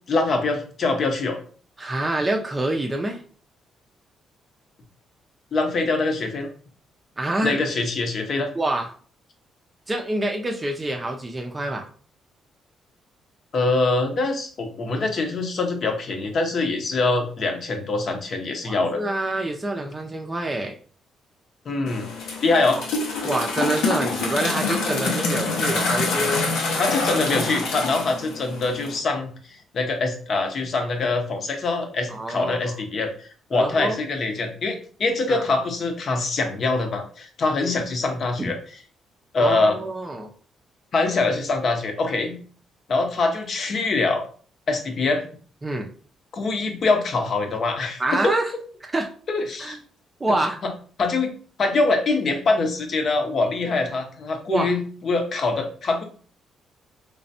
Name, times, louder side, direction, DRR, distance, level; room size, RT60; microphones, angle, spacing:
voice 1, 0.1-1.4 5.5-6.5 7.4-8.5 13.5-19.0 21.6-22.1 22.4-22.8 26.8-33.1 33.5-38.6 39.3-39.8 40.9-42.4 42.9-44.2 44.7-45.2 46.3-48.3 49.3-49.8 50.3-50.4 50.6-50.7 51.0-56.0, left 3 dB, 55° left, 5 dB, 0.8 m, -24 dB
voice 2, 1.8-3.2 7.2-7.6 8.6-8.9 9.9-11.9 18.6-20.8 22.7-22.8 23.2-26.5 27.1-27.2 32.1-32.7 33.5-34.0 35.3-35.4 37.6-37.7 38.4-38.5 39.4-40.3 45.6-45.9 48.0-48.5 48.9-49.1 49.6-49.8 50.2-50.6 54.5-54.7, right 1 dB, 25° right, 2 dB, 0.5 m, -26 dB
sound 1, 21.9-29.0, left 3 dB, 85° left, 0.8 m, -26 dB
3.3 x 3.1 x 2.7 m, 0.43 s
cardioid pair, 90°, 0 cm